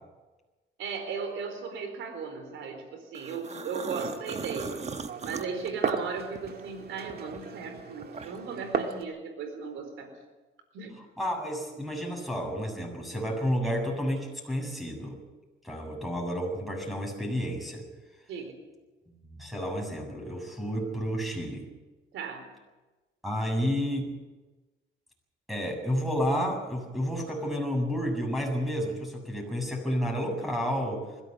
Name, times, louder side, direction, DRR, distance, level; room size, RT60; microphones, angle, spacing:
voice 1, 0.8-4.8 5.2-10.1 10.7-10.9 18.3-18.6 22.1-22.4, right 5 dB, 85° right, 5 dB, 4.2 m, -36 dB
sound 1, 3.1-6.7 7.1-8.6, right 5 dB, 35° right, 1.3 m, -39 dB
Glass, 3.9-9.0, right 6 dB, 50° right, 1.8 m, -36 dB
voice 2, 11.2-15.2 15.6-17.8 19.3-21.7 23.2-24.1 25.5-31.1, equal, ahead, 2 dB, 7.5 m, -31 dB
21.0 x 16.0 x 8.1 m, 1.2 s
cardioid pair, 90°, 20 cm